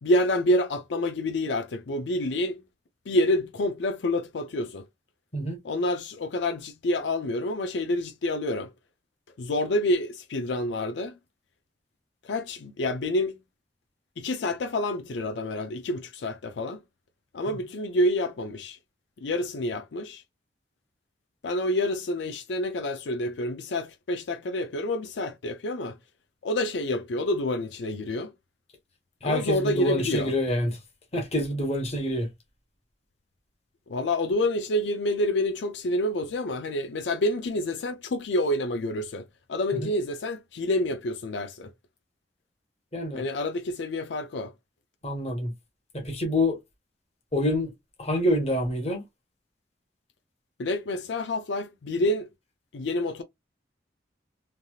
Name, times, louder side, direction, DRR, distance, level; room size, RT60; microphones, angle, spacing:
voice 1, 0.0-2.6 3.1-4.9 5.6-8.7 9.4-11.2 12.2-13.4 14.2-16.8 17.3-18.8 19.2-20.2 21.4-26.0 26.4-28.3 29.2-30.3 33.9-39.2 39.5-41.7 43.1-44.5 50.6-52.3 52.7-53.2, left 1 dB, 75° left, 0.4 m, -28 dB
voice 2, 29.2-30.8 31.1-32.3 39.7-39.9 42.9-43.2 45.0-45.5 46.0-46.6 47.3-47.7 48.0-49.0, left 1 dB, 35° left, 1.1 m, -27 dB
3.3 x 2.7 x 2.3 m
head